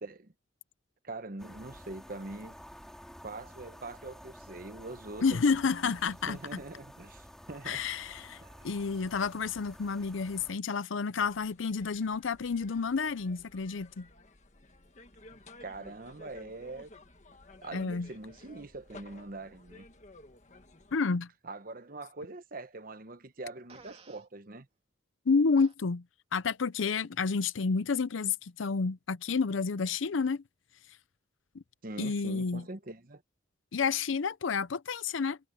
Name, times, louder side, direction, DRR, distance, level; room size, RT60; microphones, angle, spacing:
voice 1, 0.0-0.3 1.0-2.6 3.2-5.9 6.3-7.8 8.4-8.6 15.6-16.9 17.6-19.9 21.4-24.7 31.8-33.2, right 2 dB, 45° right, 1.0 m, -43 dB
sound 1, 1.4-10.5, equal, 5° left, 4.0 m, -51 dB
voice 2, 5.2-6.6 7.7-14.1 17.7-18.1 20.9-21.3 25.3-26.0 26.3-30.4 31.5-31.6 32.0-32.6 33.7-35.4, left 5 dB, 85° left, 0.6 m, -30 dB
sound 2, 11.2-21.0, left 2 dB, 40° left, 1.6 m, -55 dB
Fart, 23.7-24.3 25.6-25.7, right 4 dB, 30° right, 2.8 m, -53 dB
head